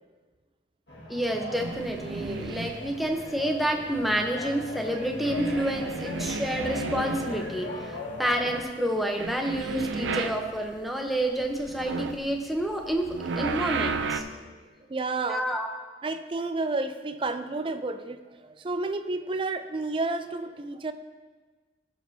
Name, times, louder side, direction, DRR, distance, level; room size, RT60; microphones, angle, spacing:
sound 1, 0.9-8.6, left 2 dB, 70° left, 1.8 m, -39 dB
voice 1, 1.1-14.2 15.3-15.7, right 1 dB, ahead, 2 dB, 0.8 m, -29 dB
sound 2, 1.6-3.1 3.7-4.7 5.0-10.9 11.2-14.2, right 4 dB, 80° right, 0.5 m, -34 dB
voice 2, 14.3-15.5 16.0-20.9, right 3 dB, 30° right, 9 dB, 0.4 m, -31 dB
16.5 x 6.3 x 2.8 m, 1.3 s
head